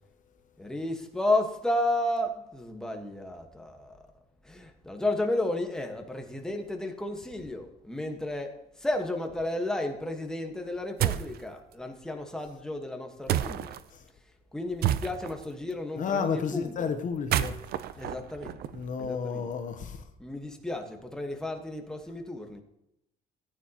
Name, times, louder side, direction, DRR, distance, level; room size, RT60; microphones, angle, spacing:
voice 1, 0.6-4.0 4.4-13.7 14.5-16.9 17.9-18.6 19.0-19.5 20.2-22.6, left 1 dB, 5° left, 1.4 m, -32 dB
sound 1, 11.0-11.4 13.3-13.8 14.8-15.4 17.1-19.1, right 11 dB, 65° right, 0.6 m, -29 dB
voice 2, 16.0-17.6 18.7-20.0, left 6 dB, 50° left, 0.9 m, -32 dB
14.0 x 9.5 x 3.0 m
cardioid pair, 110°, 17 cm